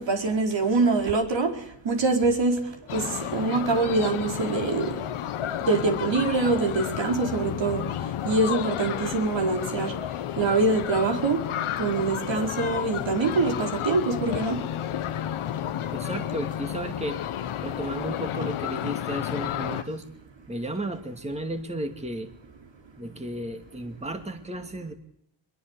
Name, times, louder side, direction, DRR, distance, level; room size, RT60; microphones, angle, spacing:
voice 1, 0.0-1.5 1.8-2.6 2.9-3.1 3.3-5.0 5.7-7.8 8.2-9.9 10.4-11.4 11.8-14.6, right 3 dB, 65° right, 3 dB, 4.7 m, -24 dB
sound 1, 2.9-19.8, left 11 dB, 85° left, 1.4 m, -31 dB
voice 2, 15.9-17.2 17.6-20.1 20.5-22.3 23.0-24.9, right 1 dB, 15° right, 6 dB, 2.3 m, -33 dB
22.5 x 22.0 x 8.3 m, 0.72 s
cardioid pair, 85°, 48 cm